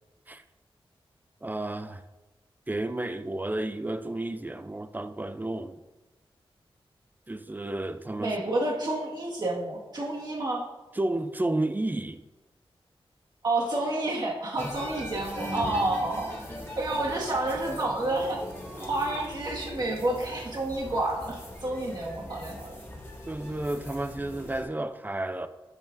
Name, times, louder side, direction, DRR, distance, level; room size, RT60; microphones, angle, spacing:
voice 1, 1.4-2.0 2.7-5.8 7.3-8.3 10.9-12.2 23.3-25.5, right 2 dB, 20° right, 0.4 m, -31 dB
voice 2, 8.2-10.7 13.4-16.3 16.8-18.4 18.8-22.8, right 2 dB, 45° right, 1.7 m, -29 dB
sound 1, 14.6-24.6, left 1 dB, 25° left, 2.4 m, -40 dB
12.0 x 7.4 x 2.6 m
wide cardioid pair, 105°, 10 cm